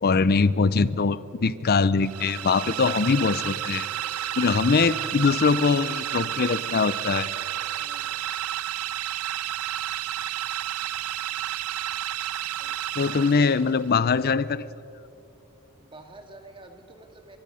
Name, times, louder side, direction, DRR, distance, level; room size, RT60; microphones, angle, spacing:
voice 1, 0.0-3.9 4.4-7.3 13.0-14.7, left 4 dB, 45° left, 17 dB, 0.5 m, -22 dB
sound 1, 2.0-13.9, right 12 dB, 80° right, 0.5 m, -31 dB
voice 2, 2.6-3.2 4.3-5.4 7.8-8.2 12.6-13.6 15.8-17.4, right 2 dB, 25° right, 5 dB, 1.8 m, -48 dB
24.0 x 22.5 x 5.6 m, 2.7 s
head